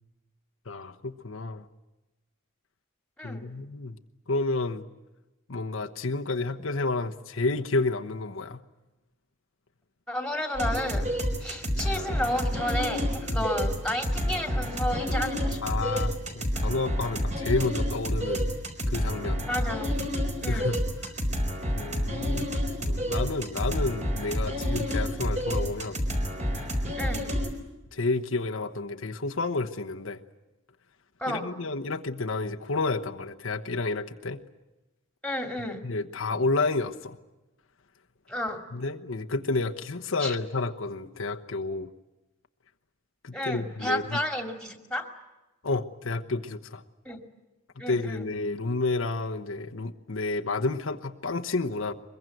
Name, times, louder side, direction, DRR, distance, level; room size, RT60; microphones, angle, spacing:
voice 1, 0.7-1.7 3.2-4.0 4.3-4.8 5.5-8.6 13.3-13.5 15.6-18.5 18.9-19.4 20.4-20.8 21.7-22.5 22.8-26.0 26.5-26.7 27.9-30.2 31.3-34.4 35.8-37.2 38.7-41.9 43.2-44.2 45.6-46.8 47.8-51.9, left 3 dB, 70° left, 5 dB, 1.0 m, -30 dB
voice 2, 10.1-11.1 11.4-15.6 19.5-20.0 20.4-20.7 26.9-27.3 31.2-31.5 35.2-35.8 38.3-38.6 40.2-40.4 43.3-45.1 47.0-47.2 47.8-48.2, left 1 dB, 5° left, 5 dB, 2.5 m, -32 dB
sound 1, 10.5-27.5, equal, 35° right, 3.9 m, -29 dB
23.5 x 22.0 x 9.2 m, 1.1 s
head